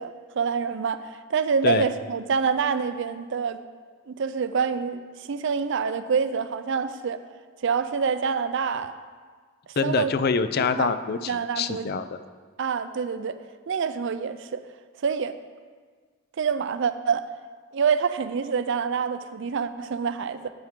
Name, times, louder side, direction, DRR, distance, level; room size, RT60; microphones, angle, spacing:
voice 1, 0.0-3.6 4.1-7.2 7.6-9.0 9.8-10.1 10.6-11.0 11.3-11.9 12.6-13.4 13.7-14.6 15.0-15.4 16.4-17.3 17.7-20.5, right 6 dB, 60° right, 12 dB, 0.4 m, -26 dB
voice 2, 9.8-12.2, left 5 dB, 50° left, 12 dB, 0.4 m, -25 dB
9.6 x 9.1 x 3.7 m, 1.6 s
head